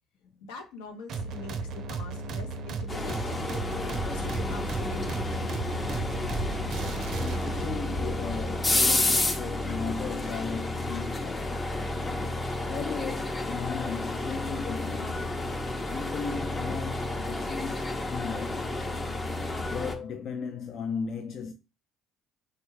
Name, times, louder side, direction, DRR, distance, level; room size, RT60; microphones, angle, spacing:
voice 1, 0.4-3.5 4.0-5.3, left 3 dB, 85° left, 0.7 m, -44 dB
sound 1, 1.1-7.8, right 4 dB, 65° right, 0.4 m, -35 dB
sound 2, 2.9-20.0, left 2 dB, 30° left, 0.7 m, -31 dB
voice 2, 3.8-4.1 6.6-11.7 12.7-15.3 15.9-18.9 19.6-21.5, left 6 dB, 60° left, 0.3 m, -36 dB
3.3 x 2.2 x 3.1 m
supercardioid pair, 65°, 0 cm